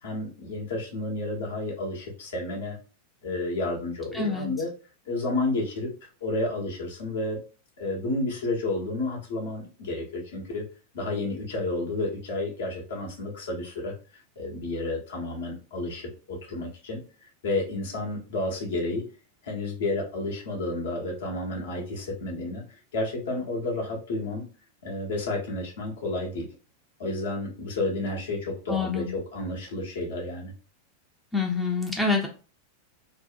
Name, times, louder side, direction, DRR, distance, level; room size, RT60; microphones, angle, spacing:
voice 1, 0.0-2.8 3.2-4.7 5.0-7.4 7.8-10.7 10.9-13.9 14.4-19.0 19.4-24.5 24.8-26.5 27.0-30.5, left 2 dB, 60° left, -1 dB, 0.7 m, -31 dB
voice 2, 4.1-4.5 28.7-29.1 31.3-32.3, left 4 dB, 5° left, 0 dB, 0.4 m, -26 dB
2.6 x 2.1 x 2.4 m, 0.35 s
figure-of-eight pair, 90°, 0 cm